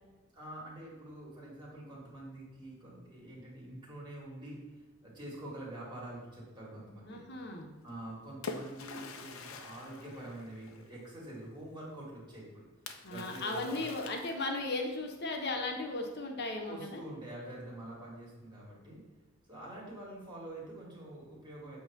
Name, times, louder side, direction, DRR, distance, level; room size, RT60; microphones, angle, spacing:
voice 1, 0.3-4.6 5.0-7.2 7.8-12.7 13.1-13.8 16.7-19.0 19.5-21.8, right 1 dB, 20° right, -6 dB, 2.4 m, -46 dB
voice 2, 7.1-7.7 13.0-17.0, left 2 dB, 50° left, 3 dB, 1.0 m, -36 dB
Splash splatter, 7.9-11.1 12.9-14.8, left 4 dB, 75° left, 0.7 m, -46 dB
8.3 x 3.1 x 5.9 m, 1.2 s
head